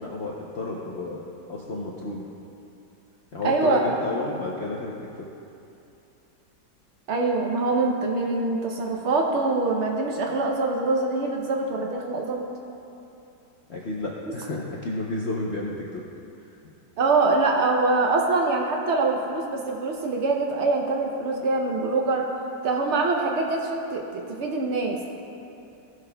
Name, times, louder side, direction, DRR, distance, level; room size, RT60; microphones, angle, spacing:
voice 1, 0.0-1.2 1.5-2.3 3.3-5.3 13.7-16.0 16.4-16.5, left 2 dB, 70° left, -4 dB, 0.6 m, -31 dB
voice 2, 3.4-3.8 7.1-12.4 17.0-22.2 22.6-25.1, right 3 dB, 90° right, 0 dB, 0.6 m, -24 dB
15.5 x 6.2 x 2.2 m, 2.8 s
omnidirectional pair, 2.1 m